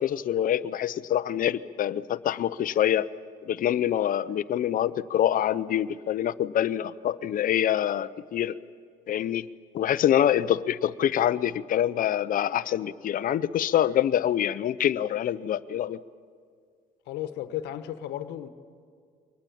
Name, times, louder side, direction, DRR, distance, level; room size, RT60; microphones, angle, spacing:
voice 1, 0.0-3.1 3.5-8.6 9.1-9.5 9.7-16.0, left 10 dB, 55° left, 14 dB, 0.7 m, -25 dB
voice 2, 17.1-18.5, left 12 dB, 85° left, 9 dB, 1.3 m, -34 dB
23.5 x 19.5 x 8.6 m, 2.1 s
cardioid pair, 110°, 17 cm